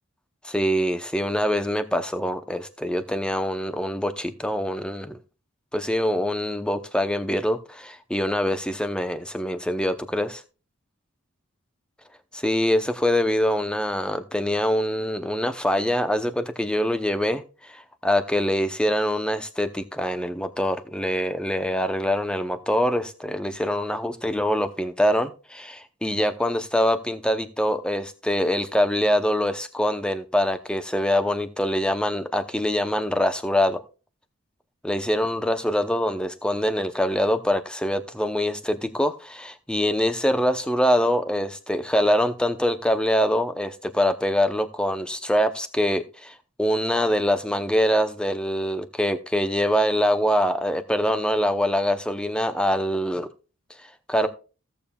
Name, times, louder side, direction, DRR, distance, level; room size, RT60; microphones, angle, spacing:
voice 1, 0.4-5.2 5.7-10.4 12.3-33.8 34.8-53.3 53.8-54.3, equal, 5° left, 0.6 m, -24 dB
16.0 x 7.1 x 2.3 m
head